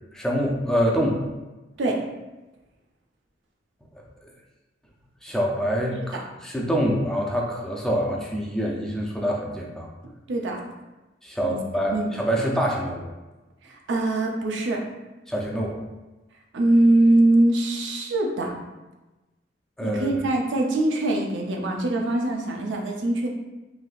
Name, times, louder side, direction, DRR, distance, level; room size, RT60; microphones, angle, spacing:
voice 1, 0.1-1.2 5.2-9.9 11.2-13.1 15.3-15.8 19.8-20.2, equal, 5° left, -2 dB, 0.4 m, -25 dB
voice 2, 10.3-10.6 11.5-11.6 11.9-12.1 13.7-14.8 16.5-18.6 19.8-23.3, right 1 dB, 80° right, 1 dB, 0.5 m, -22 dB
3.3 x 2.6 x 2.4 m, 1.1 s
head